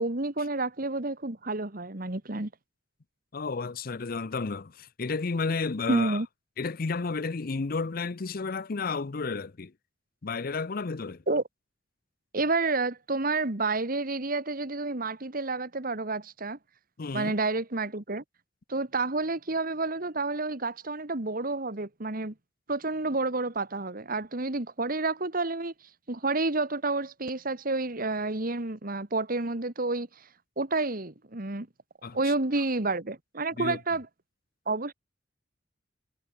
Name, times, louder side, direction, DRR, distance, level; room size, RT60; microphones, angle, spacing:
voice 1, 0.0-2.5 5.9-6.3 11.3-11.4 12.3-16.6 17.1-18.2 18.7-22.3 22.7-25.7 26.1-30.3 30.6-31.7 32.1-34.1 34.7-34.9, right 3 dB, 50° right, 1.9 m, -29 dB
voice 2, 3.3-6.2 6.6-9.7 10.2-11.2 17.0-17.3 32.0-32.6 33.6-33.8, left 4 dB, 50° left, 0.6 m, -32 dB
head